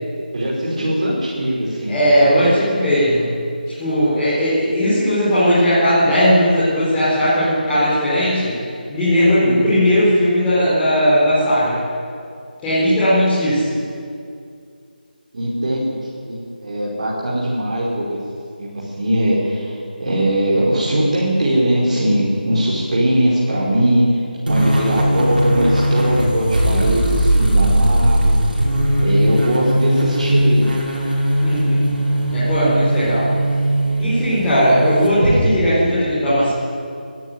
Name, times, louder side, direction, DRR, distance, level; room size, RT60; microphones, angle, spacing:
voice 1, 0.3-2.5 9.4-9.5 15.3-18.2 18.6-28.4 29.0-30.7, right 1 dB, 40° right, -6 dB, 4.9 m, -20 dB
voice 2, 1.9-3.3 3.8-8.6 8.9-11.8 12.6-13.7 31.4-31.9 32.3-33.3 34.0-36.5, equal, 10° left, -13 dB, 5.1 m, -17 dB
sound 1, 24.5-35.4, right 1 dB, 65° right, 6.0 m, -18 dB
19.5 x 13.5 x 9.7 m, 2.4 s
figure-of-eight pair, 160°, 5 cm